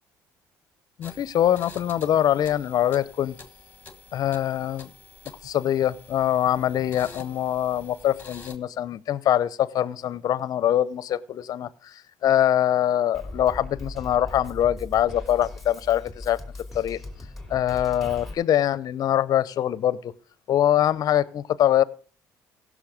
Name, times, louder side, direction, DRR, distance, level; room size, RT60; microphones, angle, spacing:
voice 1, 1.0-3.4 4.1-4.9 5.4-16.4 16.7-17.0 17.5-20.1 20.5-21.8, left 11 dB, 55° left, 19 dB, 0.7 m, -23 dB
sound 1, 1.0-8.6, left 4 dB, 20° left, 1.6 m, -47 dB
Drum kit, 13.1-18.3, left 2 dB, ahead, 2.7 m, -39 dB
16.5 x 6.4 x 5.1 m, 0.43 s
cardioid pair, 90°, 8 cm